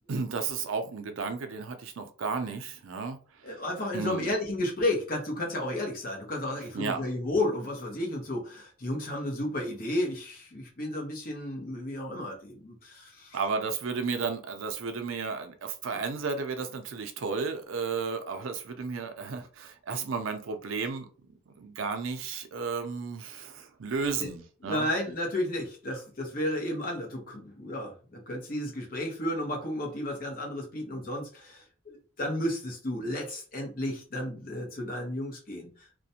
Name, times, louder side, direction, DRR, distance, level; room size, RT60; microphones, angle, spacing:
voice 1, 0.1-3.6 3.9-4.3 6.7-7.0 13.3-21.1 21.5-24.9, right 5 dB, 80° right, 7 dB, 0.5 m, -33 dB
voice 2, 3.4-13.4 24.2-24.3 24.6-35.7, left 1 dB, 45° left, 0 dB, 0.8 m, -32 dB
2.4 x 2.1 x 2.7 m, 0.38 s
head